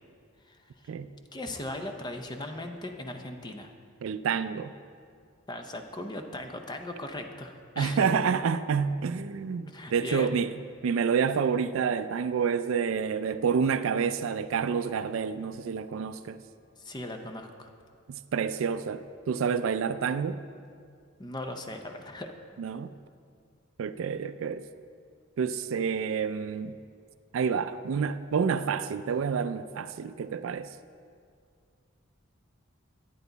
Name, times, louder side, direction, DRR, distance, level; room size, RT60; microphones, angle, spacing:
voice 1, 1.3-3.7 5.5-8.1 9.7-10.3 16.8-17.7 21.2-22.3, left 1 dB, 20° left, 0.6 m, -38 dB
voice 2, 4.0-4.7 7.8-10.5 10.8-16.4 18.1-20.4 22.6-22.9 23.8-24.6 25.4-26.8 27.3-30.7, right 6 dB, 75° right, 0.4 m, -28 dB
10.5 x 9.1 x 4.0 m
head